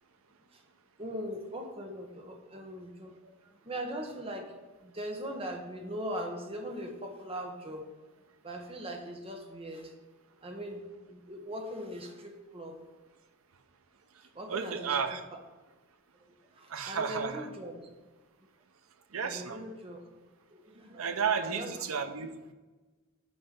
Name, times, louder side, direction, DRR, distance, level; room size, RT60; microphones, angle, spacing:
voice 1, 1.0-3.3 3.6-4.5 4.8-7.9 8.4-9.9 10.4-10.8 11.1-12.8 14.3-15.0 16.5-17.8 19.2-20.0 20.5-21.7, equal, 25° right, 3 dB, 1.1 m, -40 dB
voice 2, 14.5-15.2 16.7-17.4 19.1-19.6 21.0-22.3, right 6 dB, 80° right, 8 dB, 0.8 m, -32 dB
9.6 x 4.5 x 5.2 m, 1.2 s
head